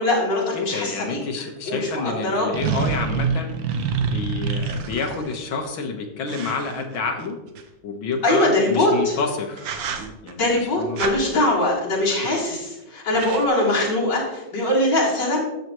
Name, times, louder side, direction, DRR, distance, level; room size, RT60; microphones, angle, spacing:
voice 1, 0.0-2.5 8.2-9.1 10.3-15.4, left 1 dB, 60° left, -6 dB, 4.2 m, -22 dB
voice 2, 0.5-3.5 4.0-7.4 7.8-9.7 10.2-11.0, left 4 dB, 80° left, 3 dB, 2.1 m, -29 dB
sound 1, 1.6-1.7 2.5-5.4 6.3-7.6 9.0-9.2 9.6-10.3 11.0-11.2 12.1-12.5 12.8-12.9 13.1-13.5, right 5 dB, 70° right, 1.6 m, -27 dB
13.0 x 8.4 x 3.1 m, 0.97 s
omnidirectional pair, 2.2 m